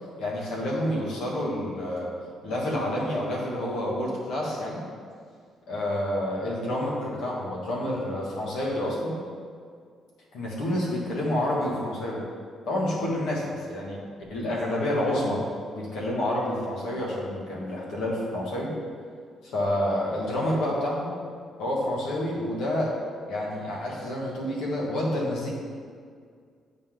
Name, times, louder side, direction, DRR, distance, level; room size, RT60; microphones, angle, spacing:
voice 1, 0.2-2.1 2.4-4.8 5.7-9.2 10.3-12.2 12.6-14.0 14.3-15.4 15.7-18.7 19.4-21.1 21.6-22.9 23.3-25.5, left 1 dB, 85° left, -4 dB, 1.7 m, -28 dB
8.7 x 4.1 x 3.8 m, 2.1 s
cardioid pair, 90°, 0 cm